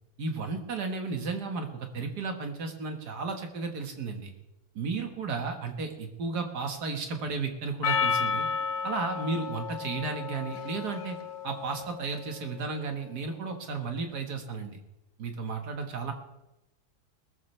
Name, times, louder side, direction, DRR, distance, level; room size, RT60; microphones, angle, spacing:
voice 1, 0.2-4.3 4.8-8.5 8.8-11.2 11.4-14.8 15.2-16.1, right 4 dB, 85° right, 4 dB, 2.1 m, -33 dB
Percussion, 7.8-12.4, left 6 dB, 80° left, 1.4 m, -32 dB
21.0 x 13.5 x 3.3 m, 0.93 s
omnidirectional pair, 1.7 m